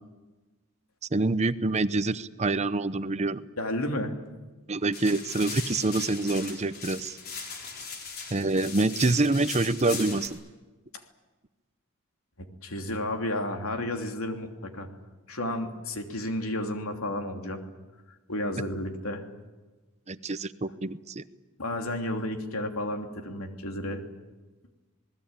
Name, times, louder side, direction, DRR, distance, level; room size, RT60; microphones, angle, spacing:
voice 1, 1.1-3.4 4.7-7.2 8.3-10.4 20.1-21.2, right 2 dB, 30° right, 14 dB, 0.8 m, -26 dB
voice 2, 3.6-4.1 12.4-14.9 15.3-17.6 18.3-19.2 21.6-24.0, left 1 dB, 90° left, 5 dB, 3.0 m, -32 dB
sound 1, 4.9-10.3, left 5 dB, 45° left, 4.7 m, -39 dB
27.0 x 19.5 x 9.0 m, 1.2 s
head